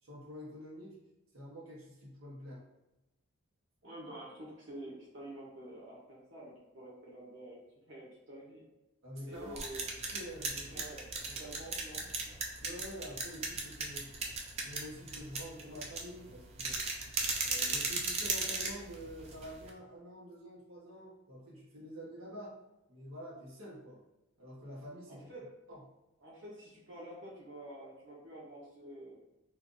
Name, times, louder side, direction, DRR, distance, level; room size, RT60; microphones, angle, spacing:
voice 1, 0.0-1.0 1.3-2.6 9.0-9.7 10.1-10.8 11.3-11.4 12.6-14.1 14.6-16.8 17.4-22.6 22.9-24.0 24.4-25.3 25.7-25.8, equal, 90° right, -6 dB, 1.0 m, -47 dB
voice 2, 3.8-7.6 7.9-8.6 9.2-9.9 10.7-12.4 25.1-25.5 26.2-29.2, right 1 dB, 60° right, -6 dB, 0.9 m, -48 dB
sound 1, 9.3-19.7, right 3 dB, 30° right, 0.4 m, -37 dB
2.6 x 2.5 x 3.7 m, 0.99 s
head